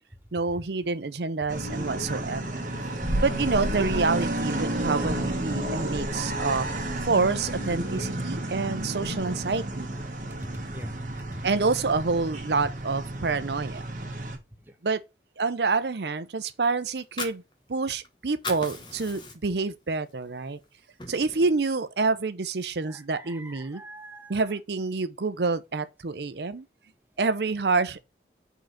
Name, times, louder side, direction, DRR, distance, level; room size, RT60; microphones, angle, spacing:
voice 1, 0.3-2.4 3.2-6.7 7.1-9.9 11.4-13.8 14.8-15.0 15.4-17.4 17.7-20.6 21.1-23.8 24.3-26.7 27.2-28.0, right 4 dB, 70° right, 0.6 m, -27 dB
sound 1, 1.5-14.4, right 1 dB, 45° right, 1.4 m, -31 dB
sound 2, 1.6-9.2, left 2 dB, 75° left, 1.1 m, -42 dB
voice 2, 10.7-11.4 22.9-24.4, right 1 dB, 10° right, 0.8 m, -43 dB
Fire, 16.9-18.1 18.3-19.7 20.1-20.2 20.6-21.6, left 3 dB, 25° left, 1.2 m, -38 dB
5.0 x 3.9 x 5.8 m
head